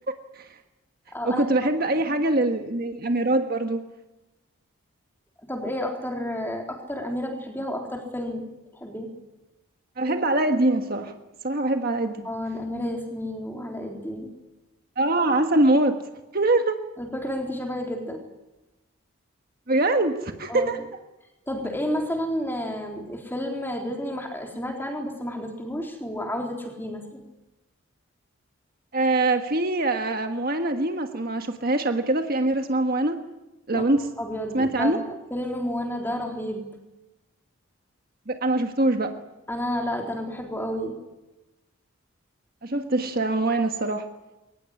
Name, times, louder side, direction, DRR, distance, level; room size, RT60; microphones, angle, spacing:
voice 1, 0.1-0.5 1.2-3.8 10.0-11.1 11.4-12.2 15.0-16.0 16.3-16.8 19.7-20.9 28.9-33.2 33.7-34.1 34.5-35.0 38.3-39.1 42.6-44.1, right 2 dB, 45° right, 6 dB, 1.5 m, -23 dB
voice 2, 1.1-1.4 5.4-8.4 8.7-9.1 12.2-14.3 17.0-18.2 20.5-20.7 21.5-27.2 33.7-33.9 34.2-36.7 39.5-41.0, equal, 10° left, 2 dB, 3.9 m, -31 dB
22.5 x 19.0 x 9.8 m, 1.0 s
head